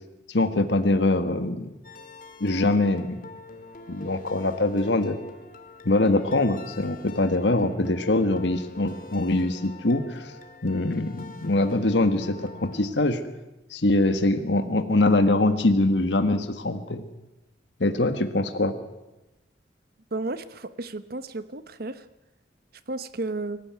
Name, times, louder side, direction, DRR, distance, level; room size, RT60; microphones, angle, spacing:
voice 1, 0.3-1.7 2.4-3.2 3.9-5.1 5.8-10.3 10.6-12.4 12.6-13.2 13.7-17.0 17.8-18.7, left 2 dB, 80° left, 9 dB, 1.6 m, -23 dB
sound 1, 1.8-12.9, left 2 dB, 50° left, 2.6 m, -44 dB
voice 2, 20.1-22.1 22.9-23.6, right 2 dB, 55° right, 13 dB, 1.0 m, -33 dB
25.0 x 15.5 x 9.5 m, 0.99 s
head